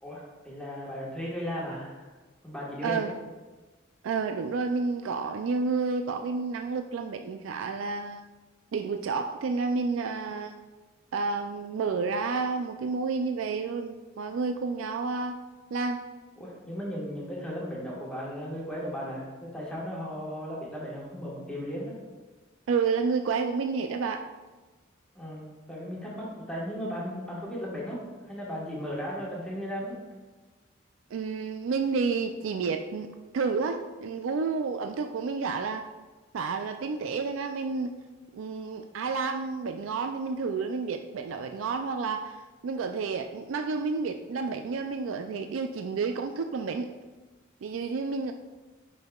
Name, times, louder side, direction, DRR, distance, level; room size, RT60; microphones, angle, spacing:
voice 1, 0.0-2.1 2.4-3.2 16.4-21.9 25.1-30.0, equal, 5° left, -6 dB, 1.4 m, -36 dB
voice 2, 2.8-3.1 4.0-8.2 8.7-10.6 11.1-15.4 15.7-16.0 22.7-24.2 31.1-33.1 33.3-35.8 36.3-38.0 38.3-46.9 47.6-48.3, right 4 dB, 90° right, 6 dB, 0.4 m, -30 dB
9.2 x 5.4 x 2.3 m, 1.3 s
head